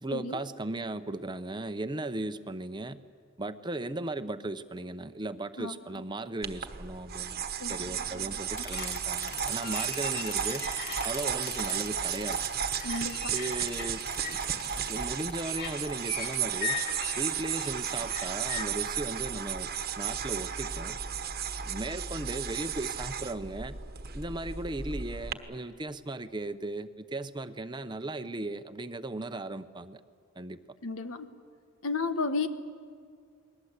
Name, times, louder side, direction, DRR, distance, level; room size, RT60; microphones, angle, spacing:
voice 1, 0.0-3.0 3.4-10.7 11.0-12.4 13.3-14.0 14.3-14.4 14.8-16.8 17.2-21.0 21.6-23.8 24.1-30.0 30.4-30.6, right 2 dB, 20° right, 10 dB, 0.8 m, -37 dB
sound 1, 6.4-25.3, right 8 dB, 45° right, 1.2 m, -34 dB
voice 2, 7.6-8.4 12.8-13.3 30.8-31.3 31.8-32.5, left 3 dB, 85° left, 9 dB, 1.4 m, -33 dB
sound 2, 8.6-18.6, left 7 dB, 45° left, 2.6 m, -40 dB
29.5 x 21.0 x 8.1 m, 2.2 s
head